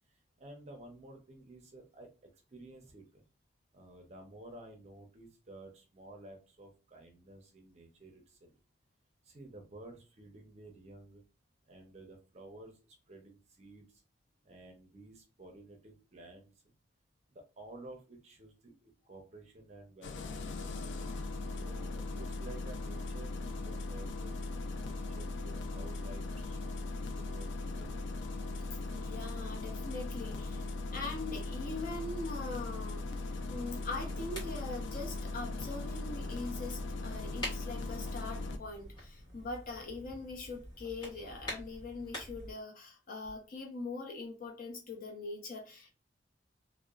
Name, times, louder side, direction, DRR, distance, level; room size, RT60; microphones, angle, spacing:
voice 1, 0.4-2.1 2.5-3.3 3.7-8.5 9.2-11.2 11.7-14.0 14.4-16.5 17.3-21.0 21.6-24.3 24.9-26.6 27.2-28.0, right 2 dB, 35° right, 3 dB, 0.5 m, -53 dB
Engine starting, 20.0-38.6, left 2 dB, 75° left, 0.3 m, -39 dB
voice 2, 29.0-30.6 30.9-45.9, left 3 dB, 50° left, 1 dB, 0.7 m, -42 dB
sound 1, 33.2-42.5, equal, 25° left, 1.4 m, -47 dB
2.8 x 2.0 x 2.3 m, 0.32 s
head